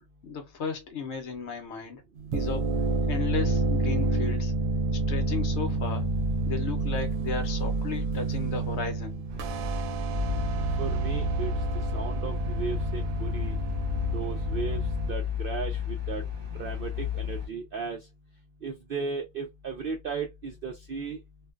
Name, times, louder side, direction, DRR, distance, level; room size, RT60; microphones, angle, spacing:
voice 1, 0.2-2.0 2.3-2.7 3.1-4.5 4.9-6.1 6.5-9.2, left 5 dB, 60° left, 0.8 m, -34 dB
sound 1, 2.2-15.1, right 2 dB, 90° right, 1.0 m, -29 dB
sound 2, 9.3-17.5, left 5 dB, 45° right, 1.1 m, -33 dB
voice 2, 10.8-11.5 11.9-13.6 14.1-14.8 15.1-16.2 16.6-18.0 18.6-21.2, right 5 dB, 70° right, 0.5 m, -35 dB
2.5 x 2.1 x 2.3 m
omnidirectional pair, 1.4 m